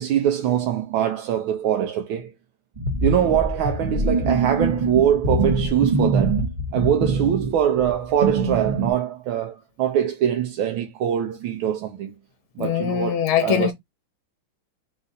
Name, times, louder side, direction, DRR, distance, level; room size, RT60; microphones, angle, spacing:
voice 1, 0.0-2.3 3.0-6.4 6.7-12.1 12.6-13.7, right 10 dB, 80° right, 1.4 m, -23 dB
sound 1, 2.8-8.9, right 3 dB, 40° right, 0.7 m, -23 dB
voice 2, 12.6-13.7, left 8 dB, 80° left, 1.5 m, -22 dB
4.0 x 2.4 x 3.9 m
omnidirectional pair, 2.3 m